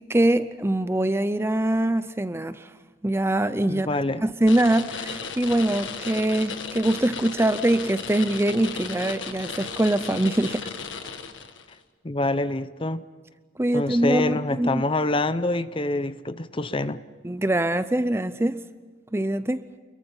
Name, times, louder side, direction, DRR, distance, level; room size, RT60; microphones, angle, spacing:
voice 1, 0.0-2.7 3.0-3.9 4.2-10.7 13.6-14.8 17.2-18.6 19.1-19.7, right 1 dB, 15° right, 13 dB, 0.5 m, -23 dB
voice 2, 3.7-4.2 12.0-13.0 13.7-17.0, left 2 dB, 30° left, 13 dB, 0.7 m, -26 dB
sound 1, 4.5-11.7, left 5 dB, 85° left, 1.7 m, -35 dB
28.5 x 22.5 x 5.5 m, 1.5 s
head